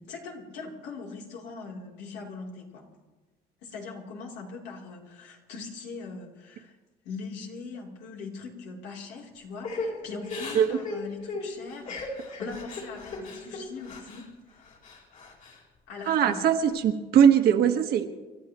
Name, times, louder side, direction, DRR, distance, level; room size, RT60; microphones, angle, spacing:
voice 1, 0.0-2.9 3.6-6.7 7.0-14.4 15.9-16.4, left 4 dB, 90° left, -1 dB, 3.4 m, -41 dB
Crying sobbing / Breathing, 9.6-14.2 14.6-15.6 16.0-16.7, left 3 dB, 50° left, 4.3 m, -37 dB
voice 2, 16.1-18.1, right 8 dB, 70° right, 6 dB, 1.5 m, -21 dB
29.5 x 13.0 x 3.1 m, 1.2 s
cardioid pair, 110°, 17 cm